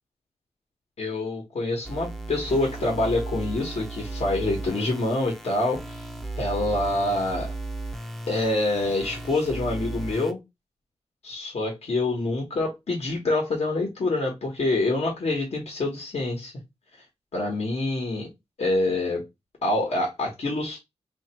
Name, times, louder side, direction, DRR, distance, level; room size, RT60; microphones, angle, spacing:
voice 1, 1.0-6.0 6.4-7.5 8.3-10.4 11.2-16.5 17.3-18.3 18.6-19.2 19.6-20.8, left 2 dB, 65° left, 1.3 m, -26 dB
sound 1, 1.8-10.3, right 2 dB, ahead, 0.5 m, -35 dB
2.9 x 2.8 x 4.3 m
wide cardioid pair, 120°, 12 cm